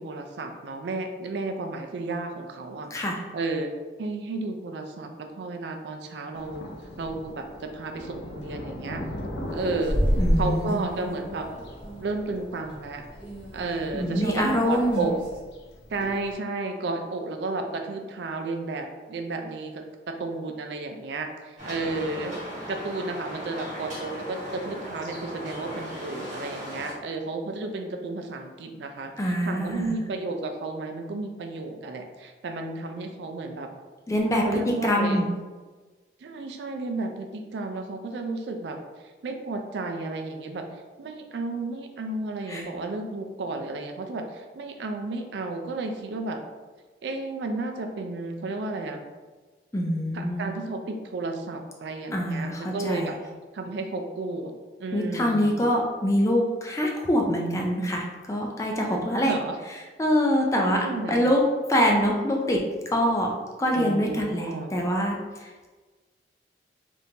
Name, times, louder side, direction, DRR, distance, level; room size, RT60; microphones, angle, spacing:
voice 1, 0.0-2.9 3.3-3.7 4.0-6.7 7.0-9.0 9.5-10.0 10.4-11.5 12.0-13.0 13.5-15.1 15.9-22.3 22.7-33.7 34.4-35.3 36.2-38.8 39.2-40.7 41.0-46.4 47.0-49.0 50.1-53.2 53.5-54.5 54.8-55.6 58.9-59.5 60.5-61.2 63.7-64.7, right 3 dB, 70° right, 4 dB, 0.4 m, -32 dB
voice 2, 2.9-3.2 10.2-10.9 13.9-15.1 29.2-30.0 34.1-35.3 42.5-42.6 49.7-50.5 52.1-53.1 54.9-59.3 60.0-60.8 61.1-61.4 61.7-63.3 63.6-65.7, equal, 15° left, 0 dB, 0.3 m, -25 dB
Thunder, 6.3-16.3, left 1 dB, 70° left, 0.5 m, -40 dB
sound 1, 9.5-15.4, equal, 5° right, 0.9 m, -30 dB
sound 2, 21.6-26.9, equal, 45° right, 1.3 m, -37 dB
3.6 x 2.6 x 2.8 m, 1.3 s
head